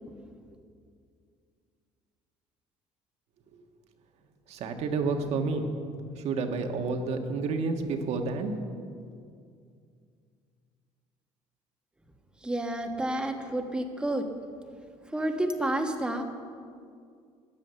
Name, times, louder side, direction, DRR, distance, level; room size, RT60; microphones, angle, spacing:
voice 1, 4.5-5.7 6.2-8.5, right 4 dB, 65° right, 5 dB, 1.5 m, -30 dB
voice 2, 12.4-14.3 15.1-16.2, right 1 dB, 10° right, 4 dB, 1.3 m, -30 dB
14.0 x 10.5 x 6.9 m, 2.3 s
cardioid pair, 130°, 12 cm